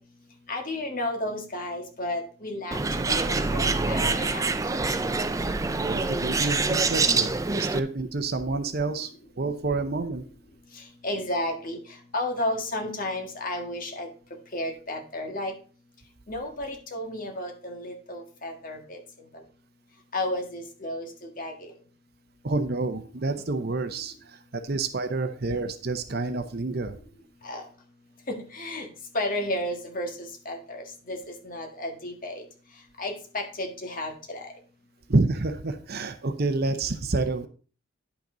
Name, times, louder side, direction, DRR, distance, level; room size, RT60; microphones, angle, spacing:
voice 1, 0.5-2.8 3.1-4.5 10.7-11.8 12.1-14.1 14.5-15.5 16.3-19.0 20.1-21.1 21.4-21.7 27.4-27.6 28.3-28.9 29.1-32.4 33.0-34.4, left 1 dB, 40° left, 2 dB, 1.8 m, -32 dB
Bird, 2.7-7.8, right 3 dB, 15° right, 0.4 m, -25 dB
voice 2, 5.8-9.1 9.4-10.2 22.4-24.1 24.5-27.0 35.1-37.5, right 3 dB, 45° right, 9 dB, 0.7 m, -28 dB
10.0 x 5.8 x 3.9 m, 0.38 s
head